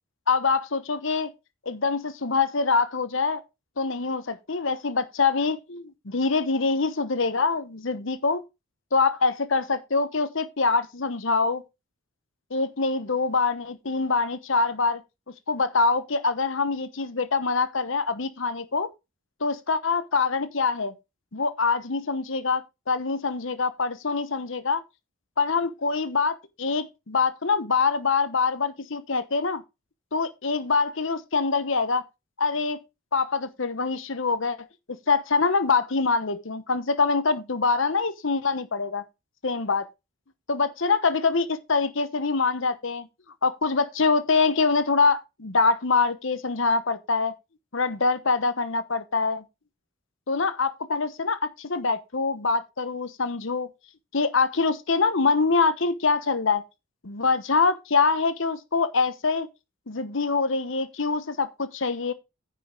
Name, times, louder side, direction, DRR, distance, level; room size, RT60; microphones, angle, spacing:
voice 1, 0.3-1.3 1.7-3.4 3.8-8.4 8.9-11.6 12.5-15.0 15.5-18.9 19.4-20.9 21.3-24.8 25.4-29.6 30.1-32.0 32.4-32.8 33.1-34.6 35.1-39.0 39.4-39.9 40.5-43.1 43.4-47.3 47.7-49.4 50.3-53.7 54.1-56.6 57.0-59.5 59.9-62.1, left 4 dB, 65° left, 1.0 m, -24 dB
10.0 x 5.5 x 4.9 m
head